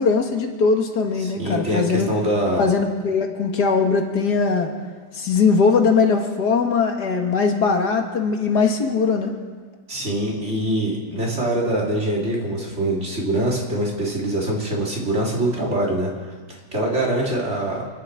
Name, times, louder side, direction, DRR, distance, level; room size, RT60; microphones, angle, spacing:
voice 1, 0.0-2.1 2.6-4.7 5.1-9.3, left 5 dB, 80° left, 3 dB, 2.2 m, -20 dB
voice 2, 1.2-2.6 9.9-17.8, right 1 dB, 45° right, -3 dB, 3.5 m, -24 dB
28.0 x 10.5 x 4.9 m, 1.5 s
omnidirectional pair, 1.7 m